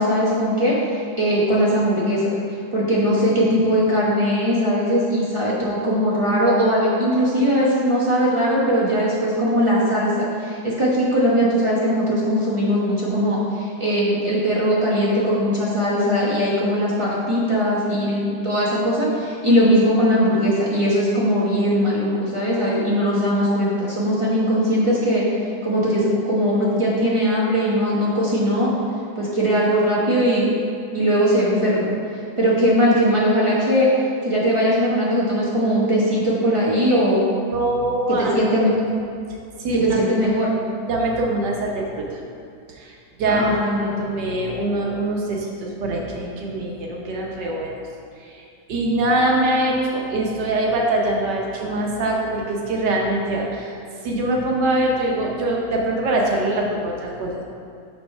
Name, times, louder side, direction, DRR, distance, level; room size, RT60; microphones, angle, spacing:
voice 1, 0.0-2.2 2.7-10.1 10.4-25.2 25.6-28.7 29.2-30.5 30.9-31.9 32.4-33.9 34.2-37.3 38.2-38.7 39.7-40.5 43.2-43.9, equal, 25° right, -7 dB, 0.7 m, -20 dB
voice 2, 37.5-38.4 38.6-38.8 39.6-40.0 40.9-42.2 42.8-47.7 48.2-48.4 48.7-53.7 54.0-57.4, right 1 dB, 70° right, -1 dB, 1.4 m, -23 dB
6.4 x 3.5 x 5.4 m, 2.5 s
omnidirectional pair, 2.0 m